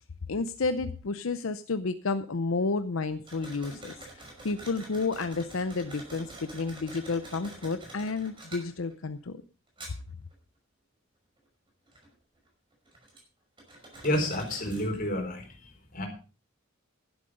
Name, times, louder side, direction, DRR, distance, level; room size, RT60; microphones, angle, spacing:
voice 1, 0.3-9.4, left 3 dB, 80° left, 11 dB, 0.7 m, -31 dB
sound 1, 3.2-9.2 9.7-10.3 11.4-11.5 11.9-13.2 13.6-15.0, right 2 dB, 25° right, 5.6 m, -47 dB
voice 2, 14.0-16.1, left 1 dB, 45° left, 3 dB, 4.3 m, -30 dB
12.0 x 11.5 x 5.1 m, 0.37 s
head